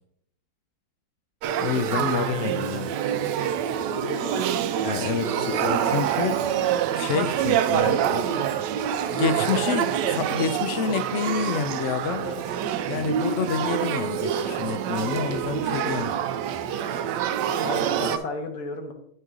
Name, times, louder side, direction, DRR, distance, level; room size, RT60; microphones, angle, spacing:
Male speech man speaking / Child speech kid speaking / Conversation, 1.4-18.2, right 9 dB, 80° right, 1.2 m, -26 dB
voice 1, 1.6-2.9 4.8-6.4 7.0-8.3 9.0-12.3 12.9-16.2, left 7 dB, 80° left, 10 dB, 0.6 m, -28 dB
voice 2, 3.9-4.5 5.2-5.5 12.2-12.4 15.7-16.0 17.6-18.9, left 2 dB, 55° left, 5 dB, 1.4 m, -34 dB
9.3 x 5.4 x 3.7 m, 0.72 s
omnidirectional pair, 1.8 m